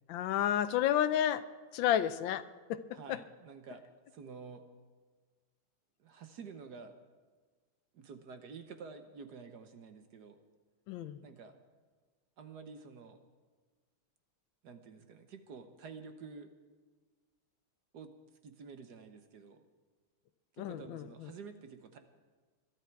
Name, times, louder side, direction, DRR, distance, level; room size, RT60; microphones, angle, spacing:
voice 1, 0.1-1.4 1.7-2.4 2.7-3.2 10.9-11.2 20.6-21.3, left 11 dB, 75° left, 13 dB, 1.3 m, -31 dB
voice 2, 2.9-3.8 4.1-4.6 6.0-7.0 7.9-10.4 11.2-11.6 12.4-13.2 14.6-16.5 17.9-18.1 18.4-19.6 20.6-22.0, right 5 dB, 60° right, 8 dB, 1.4 m, -49 dB
21.5 x 12.5 x 4.6 m, 1.5 s
omnidirectional pair, 2.3 m